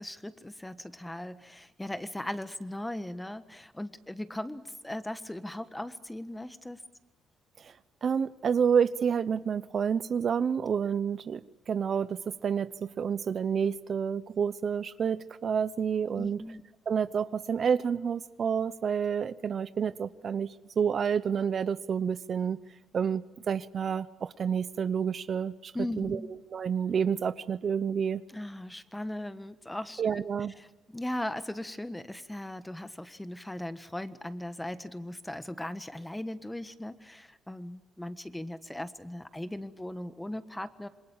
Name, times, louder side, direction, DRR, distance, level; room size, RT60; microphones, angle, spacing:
voice 1, 0.0-6.8 16.1-16.6 25.7-26.3 28.3-30.2 30.6-40.9, left 1 dB, 10° left, 11 dB, 1.4 m, -38 dB
voice 2, 8.0-11.4 11.7-12.7 13.0-16.4 16.9-22.6 22.9-25.7 26.0-26.2 26.5-28.2 30.0-30.5, right 7 dB, 50° right, 14 dB, 0.8 m, -29 dB
27.5 x 22.0 x 8.9 m, 1.1 s
cardioid pair, 90°, 0 cm